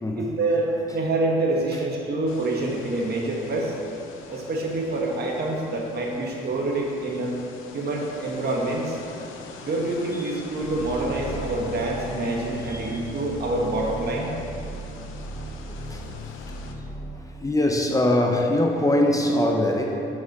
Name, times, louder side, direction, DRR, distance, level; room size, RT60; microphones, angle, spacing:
voice 1, 0.1-3.7 4.3-7.3 7.7-9.0 9.6-14.3, right 2 dB, 55° right, -1 dB, 1.7 m, -26 dB
sound 1, 2.3-16.7, left 5 dB, 90° left, 0.8 m, -44 dB
sound 2, 10.6-17.1, equal, 65° left, 1.2 m, -37 dB
voice 2, 12.7-13.0 15.9-16.0 17.4-20.1, left 1 dB, 15° left, 1 dB, 0.9 m, -22 dB
9.4 x 5.9 x 4.8 m, 2.7 s
cardioid pair, 90°, 20 cm